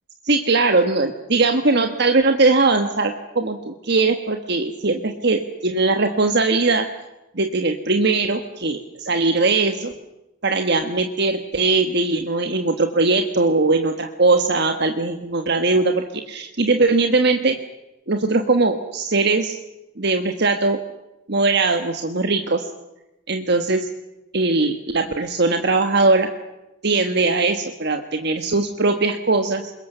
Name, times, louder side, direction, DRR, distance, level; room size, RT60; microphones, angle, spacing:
voice 1, 0.2-6.9 7.3-9.9 10.4-17.6 18.1-19.6 20.0-20.8 21.3-22.7 23.3-23.9 24.3-26.3 26.8-29.7, right 3 dB, 50° right, 6 dB, 1.4 m, -20 dB
27.0 x 22.5 x 6.8 m, 0.96 s
head